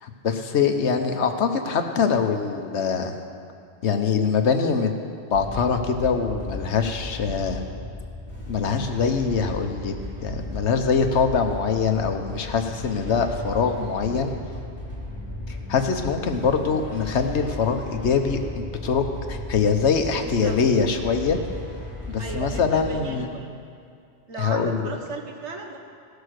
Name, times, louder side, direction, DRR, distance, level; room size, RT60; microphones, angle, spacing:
voice 1, 0.0-3.2 3.8-4.9 5.3-7.6 8.5-9.9 10.2-14.3 15.7-18.4 18.8-21.4 22.1-23.3 24.4-24.9, left 5 dB, 80° left, 5 dB, 1.2 m, -23 dB
sound 1, 5.3-23.0, left 1 dB, 10° left, 2.7 m, -36 dB
voice 2, 20.2-20.6 22.2-23.5 24.3-25.8, right 3 dB, 85° right, 2 dB, 1.6 m, -35 dB
17.0 x 6.7 x 6.5 m, 2.4 s
omnidirectional pair, 1.1 m